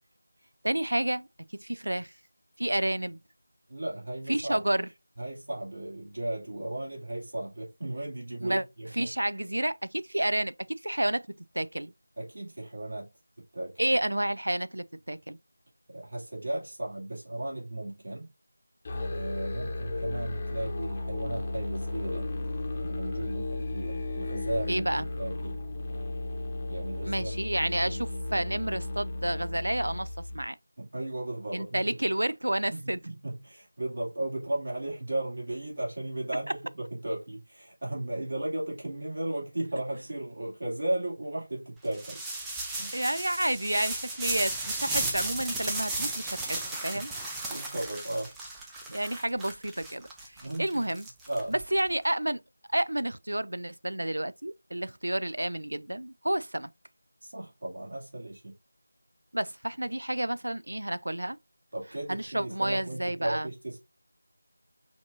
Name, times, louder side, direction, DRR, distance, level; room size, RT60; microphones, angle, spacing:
voice 1, 0.6-1.3 1.5-2.1 2.6-3.2 4.3-4.9 8.4-8.6 8.9-11.9 13.8-15.4 24.7-25.1 27.0-30.6 31.5-33.0 42.9-47.1 48.9-51.1 51.5-52.4 52.7-56.7 59.3-61.4 62.1-63.5, right 1 dB, 70° right, 0.3 m, -30 dB
voice 2, 3.7-4.6 5.2-9.1 12.2-13.1 13.5-14.0 15.9-18.3 19.0-22.3 22.7-25.6 26.7-27.3 27.8-28.0 30.8-31.8 32.7-42.2 42.8-43.0 46.9-47.0 47.5-48.3 50.4-50.8 51.3-51.5 57.2-58.5 61.7-63.8, right 1 dB, 55° right, 2.6 m, -35 dB
Musical instrument, 18.8-30.4, left 2 dB, 25° left, 0.8 m, -34 dB
sound 1, 41.9-51.8, right 2 dB, 5° right, 0.4 m, -35 dB
5.8 x 2.7 x 2.5 m
figure-of-eight pair, 165°, 0 cm